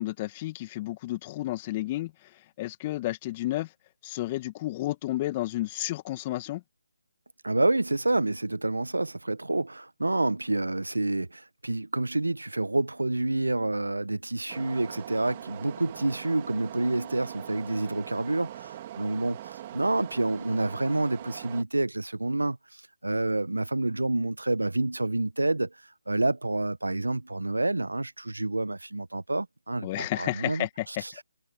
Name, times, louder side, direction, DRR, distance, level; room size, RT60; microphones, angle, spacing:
voice 1, 0.0-2.1 2.6-3.7 4.0-6.6 29.8-31.0, left 17 dB, 25° left, 2.0 m, -31 dB
voice 2, 7.4-25.7 26.1-31.2, right 2 dB, 85° right, 1.4 m, -28 dB
sound 1, 14.5-21.6, right 12 dB, 30° right, 4.0 m, -42 dB
figure-of-eight pair, 150°, 0 cm